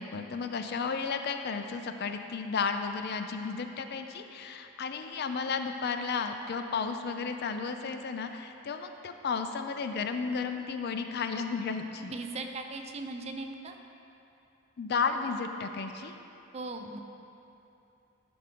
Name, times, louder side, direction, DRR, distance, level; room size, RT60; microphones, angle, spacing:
voice 1, 0.0-12.1 14.8-16.2, left 5 dB, 50° left, 7 dB, 0.4 m, -33 dB
voice 2, 12.0-13.8 16.5-17.0, right 3 dB, 30° right, 5 dB, 0.5 m, -38 dB
11.0 x 6.0 x 3.8 m, 2.8 s
head